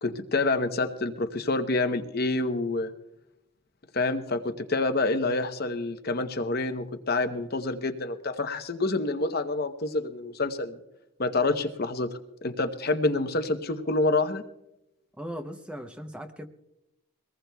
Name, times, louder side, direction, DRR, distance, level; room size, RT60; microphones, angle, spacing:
voice 1, 0.0-2.9 3.9-10.8 11.2-12.1 12.4-14.4, left 2 dB, 45° left, 8 dB, 0.8 m, -27 dB
voice 2, 15.2-16.5, equal, 5° right, 6 dB, 0.6 m, -38 dB
23.0 x 19.0 x 2.3 m, 0.90 s
head